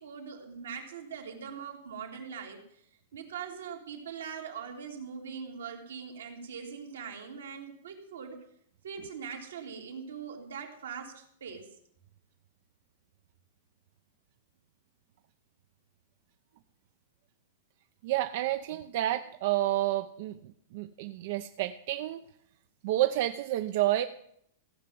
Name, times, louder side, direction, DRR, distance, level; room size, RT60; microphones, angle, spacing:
voice 1, 0.0-8.4 8.8-11.7, right 6 dB, 90° right, 1 dB, 3.0 m, -42 dB
voice 2, 18.0-20.4 20.7-22.2 22.8-24.0, right 14 dB, 60° right, 8 dB, 0.7 m, -29 dB
16.0 x 5.8 x 9.3 m, 0.71 s
hypercardioid pair, 135°, 0 cm